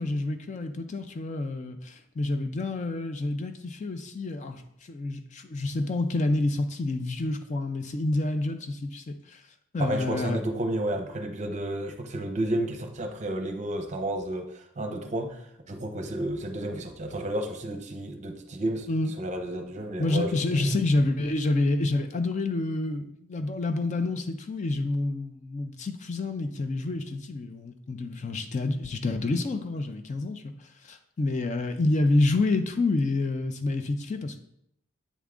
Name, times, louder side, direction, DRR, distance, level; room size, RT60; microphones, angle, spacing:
voice 1, 0.0-9.4 9.7-10.4 18.9-19.1 20.0-34.4, left 2 dB, 35° left, 8 dB, 0.4 m, -28 dB
voice 2, 9.8-18.9 19.2-20.8, right 1 dB, 35° right, 4 dB, 0.7 m, -31 dB
8.1 x 3.6 x 3.6 m, 0.73 s
head